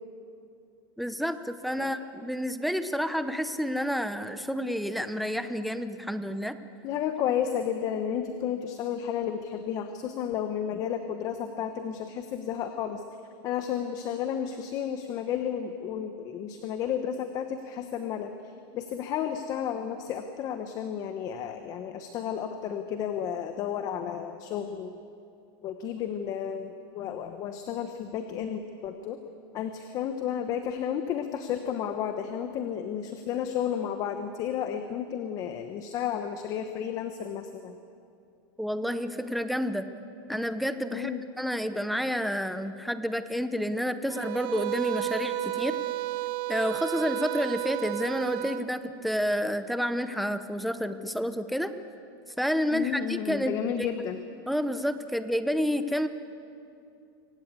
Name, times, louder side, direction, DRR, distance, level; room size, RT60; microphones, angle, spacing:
voice 1, 1.0-6.6 38.6-39.9 40.3-41.1 41.4-45.8 46.5-51.7 52.4-53.9 54.5-56.1, equal, ahead, 10 dB, 0.7 m, -29 dB
voice 2, 6.8-13.0 13.4-25.0 25.6-29.2 29.5-37.8 40.9-41.2 52.7-54.2, left 8 dB, 30° left, 8 dB, 1.0 m, -32 dB
sound 1, 44.1-48.7, right 16 dB, 45° right, 0.9 m, -32 dB
25.0 x 17.5 x 8.4 m, 2.6 s
supercardioid pair, 165°, 12 cm